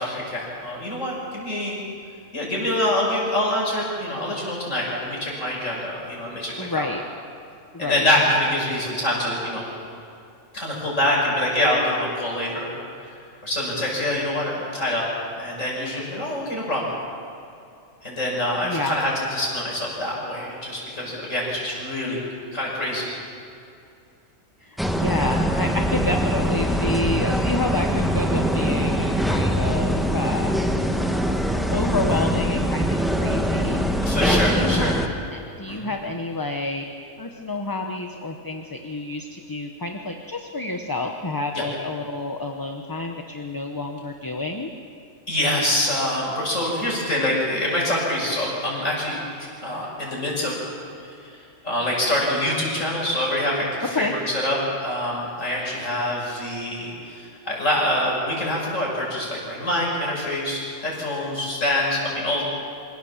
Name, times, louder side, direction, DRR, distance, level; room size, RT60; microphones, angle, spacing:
voice 1, 0.0-1.8 2.3-6.8 7.8-9.7 10.5-12.8 13.4-15.1 15.4-16.9 18.0-22.2 22.5-23.1 34.0-34.9 35.7-35.8 41.5-41.6 45.3-49.2 49.6-50.6 51.3-62.4, left 1 dB, 80° left, -3 dB, 6.4 m, -25 dB
voice 2, 6.6-7.0 7.7-8.1 18.6-18.9 24.6-30.5 31.7-33.8 34.2-35.1 35.3-36.9 37.2-44.7 53.9-54.1, left 2 dB, 20° left, 4 dB, 0.9 m, -29 dB
sound 1, 24.8-35.1, equal, ahead, 1.2 m, -23 dB
26.0 x 17.0 x 7.2 m, 2.6 s
omnidirectional pair, 1.3 m